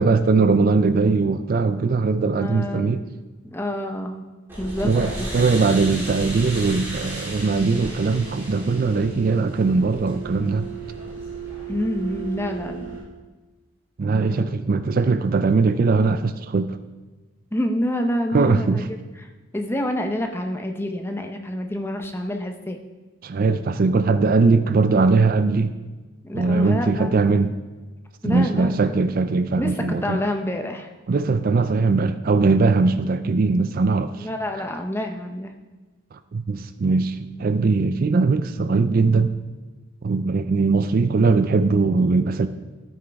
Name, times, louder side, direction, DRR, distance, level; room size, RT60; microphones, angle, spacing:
voice 1, 0.0-3.0 4.8-10.7 14.0-16.8 18.3-18.9 23.2-25.7 26.3-27.5 28.2-30.2 31.1-34.3 36.3-39.3 40.0-42.5, right 4 dB, 45° right, 12 dB, 0.3 m, -20 dB
voice 2, 2.3-3.1 3.4-4.2 4.6-4.9 5.2-5.4 11.7-13.0 14.3-14.5 17.5-18.8 19.2-22.8 26.2-27.3 28.2-29.1 29.6-30.9 34.2-35.5, left 1 dB, 10° left, 5 dB, 0.7 m, -28 dB
sound 1, 4.5-13.0, right 2 dB, 10° right, 3.3 m, -34 dB
13.0 x 9.0 x 3.5 m, 1.3 s
head